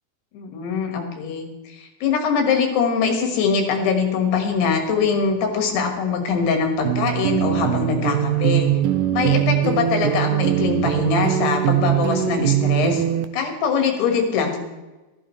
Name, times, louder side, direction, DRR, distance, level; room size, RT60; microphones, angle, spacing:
voice 1, 0.3-8.7 9.1-13.0 13.3-14.6, left 5 dB, 85° left, 3 dB, 3.8 m, -22 dB
sound 1, 6.8-13.2, right 12 dB, 80° right, 1.9 m, -21 dB
15.0 x 13.5 x 3.3 m, 1.1 s
omnidirectional pair, 4.6 m